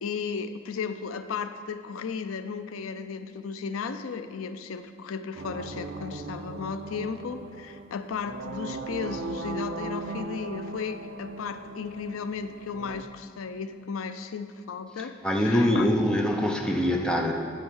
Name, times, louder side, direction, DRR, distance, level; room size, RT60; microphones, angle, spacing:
voice 1, 0.0-15.9, left 5 dB, 90° left, 10 dB, 0.5 m, -35 dB
sound 1, 5.3-13.0, right 3 dB, 65° right, 0.5 m, -38 dB
voice 2, 15.2-17.3, equal, 5° left, 1 dB, 0.6 m, -24 dB
9.1 x 5.6 x 6.3 m, 2.1 s
head